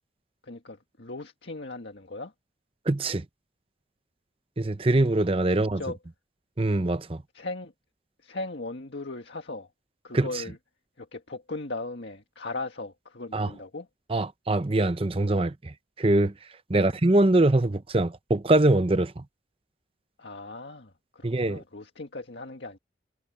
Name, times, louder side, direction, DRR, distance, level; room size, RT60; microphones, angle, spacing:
voice 1, 0.4-2.3 5.5-6.0 7.3-7.7 8.2-9.7 10.0-10.6 11.0-13.9 16.7-16.9 20.2-22.8, left 2 dB, 70° left, 1.7 m, -38 dB
voice 2, 2.9-3.2 4.6-5.8 6.6-7.2 10.1-10.3 13.3-13.5 14.1-16.3 16.7-19.2 21.2-21.6, right 2 dB, 30° right, 0.7 m, -23 dB
head